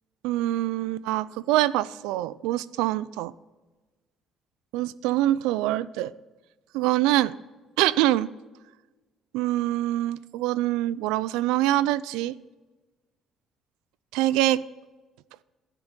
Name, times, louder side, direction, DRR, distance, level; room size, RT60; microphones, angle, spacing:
voice 1, 0.2-3.3 4.7-6.1 6.7-7.3 7.8-8.3 9.3-12.4 14.1-14.6, right 15 dB, 90° right, 20 dB, 0.4 m, -24 dB
12.0 x 10.0 x 5.3 m, 1.2 s
supercardioid pair, 80°, 0 cm